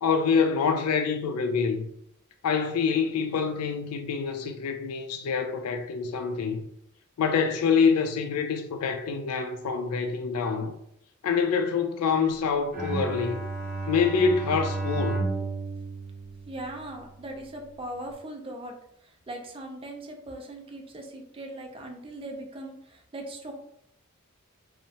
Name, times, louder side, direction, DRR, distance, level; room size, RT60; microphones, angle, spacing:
voice 1, 0.0-1.9 2.4-6.7 7.2-10.8 11.2-13.4 13.9-15.3, left 5 dB, 85° left, 0.3 m, -26 dB
Bowed string instrument, 12.7-17.1, right 3 dB, 45° right, 0.8 m, -32 dB
voice 2, 16.5-18.7 19.0-23.5, right 1 dB, 25° right, 0.4 m, -39 dB
2.7 x 2.0 x 2.8 m
head